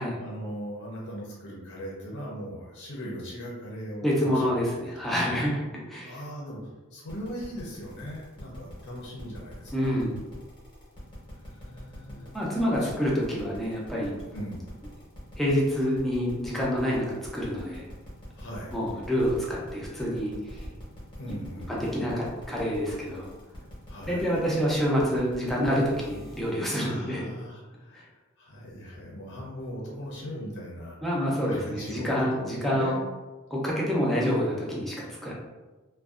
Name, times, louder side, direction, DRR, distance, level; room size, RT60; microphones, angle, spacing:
voice 1, 0.2-4.4 4.7-5.3 6.0-10.0 11.4-12.3 12.8-13.0 14.3-14.7 18.3-18.8 21.2-22.0 23.9-24.4 26.7-28.1 28.4-31.0 31.4-33.0, equal, 55° left, -4 dB, 0.6 m, -39 dB
voice 2, 4.0-5.6 5.9-6.2 9.7-10.2 12.3-14.1 15.4-17.9 18.7-20.6 21.7-23.3 24.1-27.3 31.0-32.9 33.5-35.3, equal, ahead, -5 dB, 0.5 m, -27 dB
sound 1, 7.1-26.6, equal, 20° left, 0.8 m, -46 dB
2.5 x 2.2 x 2.3 m, 1.2 s
head